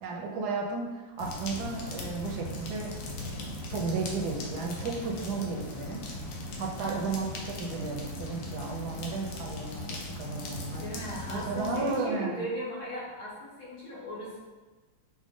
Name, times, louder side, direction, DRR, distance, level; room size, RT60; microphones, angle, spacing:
voice 1, 0.0-2.9 3.2-6.0 6.6-10.9 11.3-12.4, right 4 dB, 70° right, 0 dB, 1.0 m, -34 dB
sound 1, 1.2-12.1, left 2 dB, 70° left, 1.4 m, -39 dB
voice 2, 6.8-7.2 10.8-14.4, equal, 45° left, -7 dB, 1.4 m, -37 dB
6.0 x 2.1 x 3.6 m, 1.3 s
omnidirectional pair, 2.1 m